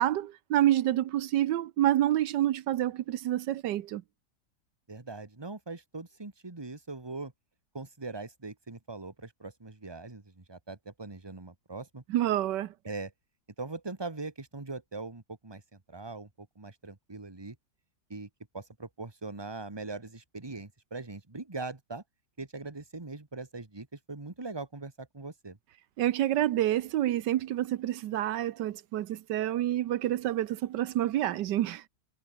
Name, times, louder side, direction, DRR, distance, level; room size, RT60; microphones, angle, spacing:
voice 1, 0.0-4.0 12.1-12.7 26.0-31.8, right 13 dB, 85° right, 1.4 m, -28 dB
voice 2, 4.9-7.3 7.7-12.0 12.8-13.1 13.6-15.6 15.9-17.6 18.1-18.3 18.5-22.0 22.4-25.6, right 3 dB, 15° right, 1.8 m, -41 dB
omnidirectional pair, 1.8 m